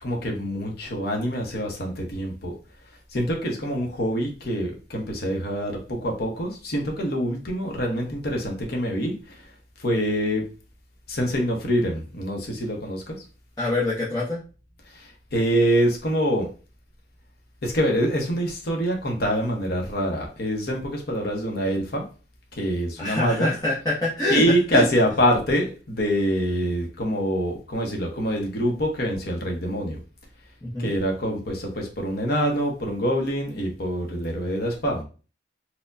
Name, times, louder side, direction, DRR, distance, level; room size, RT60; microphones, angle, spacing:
voice 1, 0.0-2.5 3.1-9.4 9.8-10.4 11.1-13.2 14.9-16.5 17.6-22.0 22.6-23.5 24.3-30.0 30.8-35.0, equal, 55° left, 1 dB, 0.8 m, -25 dB
voice 2, 13.6-14.4 23.0-24.4 24.7-24.8 30.6-30.9, left 2 dB, 20° left, -8 dB, 0.7 m, -25 dB
4.3 x 2.2 x 2.4 m, 0.35 s
head